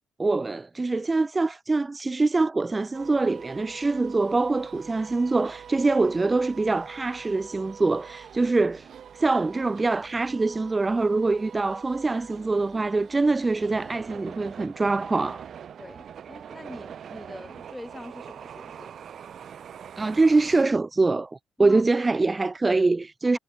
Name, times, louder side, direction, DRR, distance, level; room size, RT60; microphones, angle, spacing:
voice 1, 0.2-8.9 9.1-15.5 20.0-23.4, right 3 dB, 25° right, 0.7 m, -24 dB
sound 1, 2.9-20.6, right 8 dB, 50° right, 3.4 m, -44 dB
voice 2, 15.8-18.9 21.6-21.9, left 1 dB, 5° left, 4.3 m, -43 dB
figure-of-eight pair, 45°, 0 cm